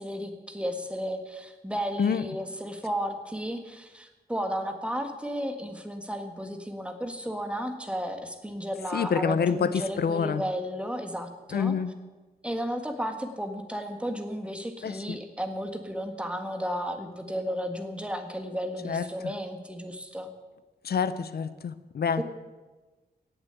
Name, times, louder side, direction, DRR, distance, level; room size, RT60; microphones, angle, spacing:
voice 1, 0.0-11.7 12.4-20.3, equal, 5° right, 6 dB, 1.6 m, -33 dB
voice 2, 8.9-10.4 11.5-11.9 14.8-15.2 18.8-19.1 20.8-22.2, left 6 dB, 70° left, 14 dB, 0.6 m, -27 dB
17.5 x 7.2 x 8.2 m, 1.2 s
wide cardioid pair, 130°, 17 cm